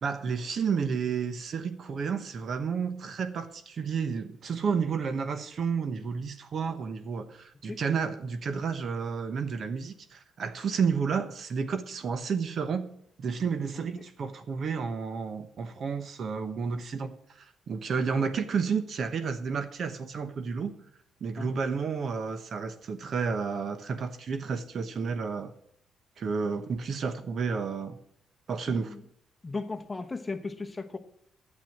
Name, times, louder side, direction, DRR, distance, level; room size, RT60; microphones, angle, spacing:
voice 1, 0.0-12.9 13.2-20.8 21.2-25.5 26.2-28.0 28.5-29.0, right 5 dB, 55° right, 1.0 m, -31 dB
voice 2, 28.7-29.0 29.4-31.0, left 3 dB, 20° left, 1.0 m, -36 dB
9.4 x 7.7 x 7.4 m
cardioid pair, 90°, 0 cm